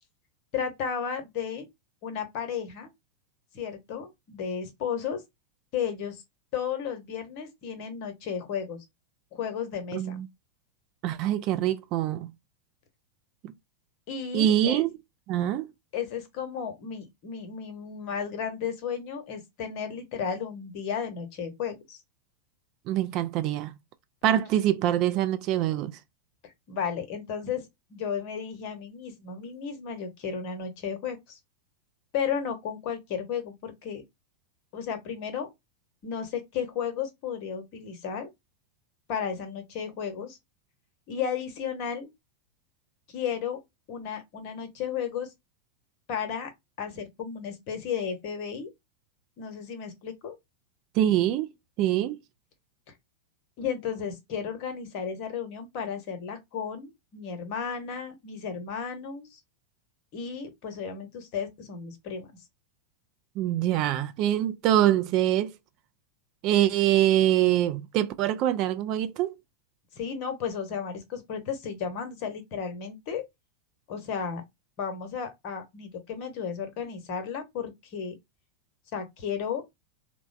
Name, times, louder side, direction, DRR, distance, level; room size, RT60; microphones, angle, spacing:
voice 1, 0.5-1.7 2.0-2.9 3.5-5.2 5.7-6.2 6.5-8.8 9.3-10.2 14.1-14.8 15.9-22.0 26.7-31.4 32.1-34.0 34.7-35.5 36.0-38.3 39.1-40.4 41.1-42.1 43.1-43.6 43.9-45.3 46.1-46.5 46.8-48.7 49.4-50.4 53.6-59.4 60.1-62.3 69.9-73.2 73.9-74.4 74.8-78.1 78.9-79.6, left 7 dB, 45° left, 0.8 m, -33 dB
voice 2, 9.9-10.3 11.0-12.3 13.4-13.5 14.3-14.9 15.3-15.7 22.9-23.7 24.2-25.9 51.0-51.5 51.8-52.2 63.4-65.5 66.4-69.3, right 12 dB, 40° right, 0.3 m, -24 dB
3.2 x 2.0 x 2.5 m
figure-of-eight pair, 90°, 0 cm